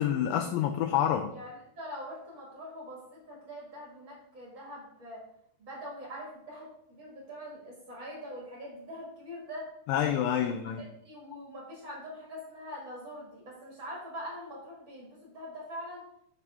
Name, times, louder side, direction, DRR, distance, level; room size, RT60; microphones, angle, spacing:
voice 1, 0.0-1.3 9.9-10.8, left 10 dB, 80° left, 5 dB, 2.2 m, -28 dB
voice 2, 1.3-5.2 5.6-9.6 10.3-16.0, equal, 35° right, -4 dB, 1.5 m, -43 dB
6.7 x 6.0 x 3.5 m, 0.75 s
omnidirectional pair, 4.2 m